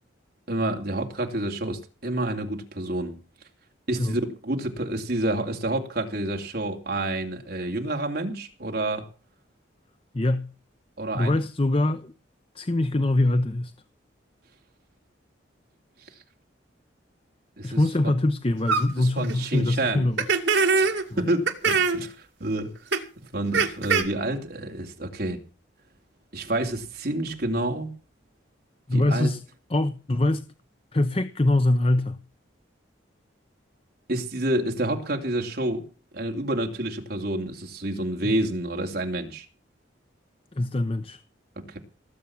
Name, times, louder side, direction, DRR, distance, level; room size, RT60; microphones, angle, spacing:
voice 1, 0.5-3.2 3.9-9.1 11.0-11.4 17.6-18.1 19.0-20.1 20.7-22.7 23.2-25.4 26.3-27.9 28.9-29.3 34.1-35.9 36.1-39.5 41.6-41.8, right 1 dB, 55° right, 2.8 m, -29 dB
voice 2, 10.1-10.5 11.1-12.1 12.5-13.7 17.6-20.3 21.1-21.2 28.9-29.4 29.7-30.5 30.9-32.2 38.2-38.3 40.5-41.2, left 2 dB, 30° left, 0.7 m, -23 dB
sound 1, 18.7-18.8 19.2-19.3 20.2-21.0 21.5-22.0 22.9-23.0 23.5-24.0, right 5 dB, 70° right, 2.5 m, -22 dB
18.5 x 8.1 x 7.1 m
head